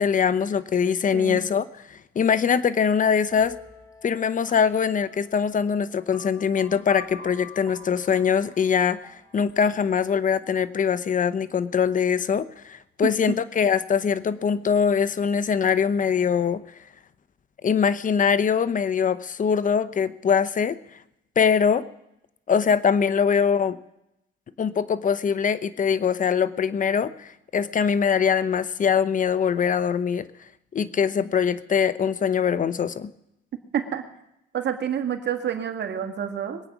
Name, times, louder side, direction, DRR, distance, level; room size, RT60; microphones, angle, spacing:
voice 1, 0.0-3.6 4.0-16.6 17.6-20.8 21.4-21.8 22.5-23.8 24.6-30.3 30.7-33.1, left 7 dB, 40° left, 15 dB, 0.8 m, -23 dB
sound 1, 3.3-10.9, left 4 dB, 10° left, 6.1 m, -46 dB
voice 2, 34.5-36.6, right 9 dB, 60° right, 5 dB, 1.8 m, -28 dB
22.5 x 8.6 x 6.1 m, 0.85 s
cardioid pair, 90°, 20 cm